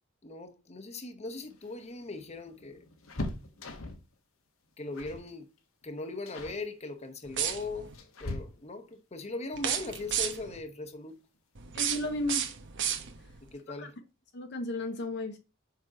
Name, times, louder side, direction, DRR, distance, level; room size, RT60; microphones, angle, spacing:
voice 1, 0.2-2.8 4.8-5.5 5.8-7.9 8.2-11.1 13.4-14.0, left 2 dB, 30° left, 1.0 m, -39 dB
sound 1, 1.4-4.1 4.9-5.3 5.6-5.8 6.3-6.6 7.5-8.9 10.7-10.8 11.2-11.3 12.4-12.9 13.2-13.3 13.6-13.8, left 2 dB, 75° left, 1.3 m, -41 dB
sound 2, 7.3-7.9 9.5-10.6 11.5-13.4, right 9 dB, 60° right, 1.0 m, -33 dB
voice 2, 11.8-12.5 13.8-13.9 14.3-15.4, left 2 dB, 55° left, 0.8 m, -34 dB
6.5 x 5.4 x 4.9 m
head